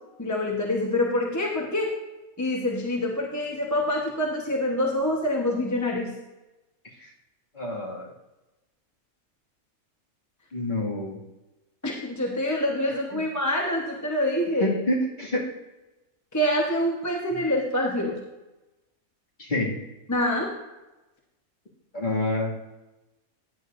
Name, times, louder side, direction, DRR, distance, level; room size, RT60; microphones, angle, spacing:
voice 1, 0.2-1.9 2.4-6.1 11.8-14.8 16.3-18.2 20.1-20.5, left 1 dB, 15° left, -1 dB, 1.0 m, -26 dB
voice 2, 7.5-8.1 10.5-11.2 13.1-13.2 14.6-15.4 17.3-17.4 19.4-19.8 21.9-22.5, left 1 dB, 35° left, -4 dB, 2.4 m, -27 dB
15.0 x 9.5 x 2.6 m, 1.0 s
omnidirectional pair, 1.5 m